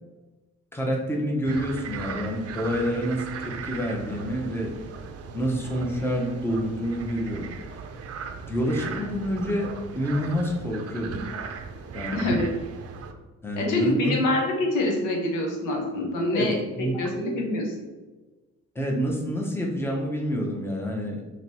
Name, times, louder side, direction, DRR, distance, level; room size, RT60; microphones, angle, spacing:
voice 1, 0.7-4.7 5.3-7.5 8.5-11.3 11.9-12.3 13.4-14.1 16.3-16.5 16.8-17.3 18.7-21.2, equal, 10° left, -1 dB, 0.8 m, -28 dB
sound 1, 1.4-13.1, right 5 dB, 55° right, 0.5 m, -37 dB
voice 2, 12.1-12.5 13.6-17.8, left 1 dB, 90° left, 0 dB, 1.0 m, -25 dB
3.2 x 3.0 x 4.2 m, 1.2 s
cardioid pair, 90°, 30 cm